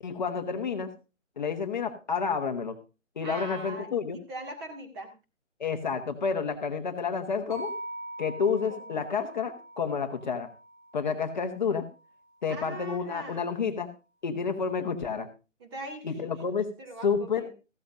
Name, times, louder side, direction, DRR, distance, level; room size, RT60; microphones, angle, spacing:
voice 1, 0.0-0.9 1.4-2.7 3.2-4.2 5.6-7.7 8.2-10.5 10.9-11.9 12.4-13.9 14.2-15.3 16.0-16.7 17.0-17.5, left 6 dB, 35° left, 7 dB, 1.1 m, -30 dB
voice 2, 3.2-5.1 8.7-9.0 12.5-13.5 15.6-16.1 16.8-17.5, right 2 dB, 20° right, 4 dB, 2.0 m, -41 dB
sound 1, 7.5-11.7, right 1 dB, 45° right, 5.8 m, -43 dB
14.5 x 14.0 x 2.5 m, 0.30 s
figure-of-eight pair, 160°, 38 cm